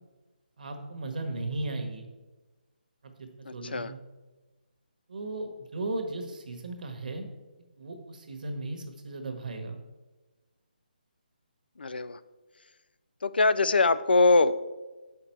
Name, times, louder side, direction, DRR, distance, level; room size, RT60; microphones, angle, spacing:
voice 1, 0.6-2.1 3.0-4.0 5.1-7.3 7.8-9.8, right 2 dB, 55° right, 5 dB, 1.4 m, -36 dB
voice 2, 3.5-3.9 11.8-12.2 13.2-14.6, left 3 dB, 85° left, 14 dB, 0.4 m, -23 dB
7.9 x 5.9 x 4.5 m, 1.2 s
hypercardioid pair, 165°, 5 cm